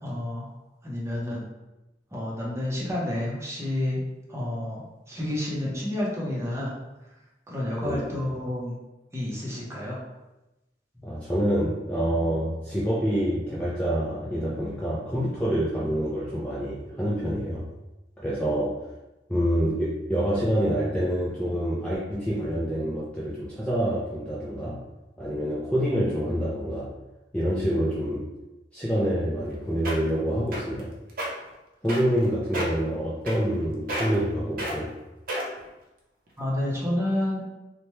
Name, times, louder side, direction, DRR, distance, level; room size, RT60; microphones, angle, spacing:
voice 1, 0.0-0.5 0.8-1.4 2.1-4.0 4.3-6.7 7.5-8.8 9.1-10.0 36.4-37.4, left 1 dB, 15° right, -5 dB, 0.7 m, -29 dB
voice 2, 11.0-17.7 18.2-18.8 19.3-24.8 25.2-26.9 27.3-28.3 28.7-30.9 31.8-34.9, equal, 5° left, -7 dB, 0.4 m, -27 dB
sound 1, 29.4-29.5 29.8-30.1 30.5-30.8 31.1-31.3 31.9-32.2 32.5-32.8 33.3-33.6 33.9-34.2 34.6-34.8 35.3-35.7 36.3-36.4, right 1 dB, 50° right, 0.6 m, -30 dB
2.9 x 2.1 x 3.0 m, 1.0 s
head